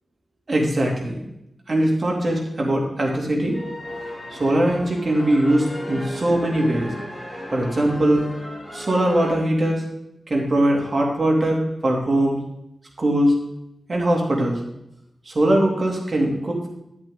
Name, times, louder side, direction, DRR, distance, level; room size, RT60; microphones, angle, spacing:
voice 1, 0.5-1.2 1.7-3.6 4.3-6.9 7.5-8.2 8.7-9.8 10.3-12.4 13.0-13.3 13.9-14.6 15.3-16.7, right 1 dB, 40° right, -1 dB, 2.5 m, -21 dB
sound 1, 3.5-9.3, equal, 15° left, 2.8 m, -34 dB
11.0 x 7.9 x 3.7 m, 0.83 s
wide cardioid pair, 100°, 0 cm